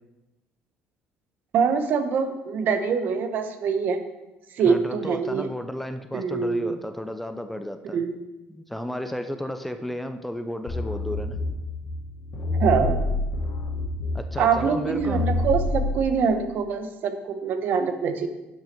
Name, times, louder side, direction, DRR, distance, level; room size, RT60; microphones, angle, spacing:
voice 1, 1.5-4.0 4.5-5.5 6.1-6.8 7.9-8.1 12.6-13.1 14.4-18.3, right 6 dB, 55° right, 9 dB, 0.9 m, -24 dB
voice 2, 4.7-8.0 8.5-11.4 14.1-15.3, equal, 5° left, 8 dB, 0.5 m, -33 dB
sound 1, 10.7-16.0, left 2 dB, 60° left, 2.2 m, -28 dB
11.0 x 5.9 x 4.4 m, 1.0 s
cardioid pair, 125°, 4 cm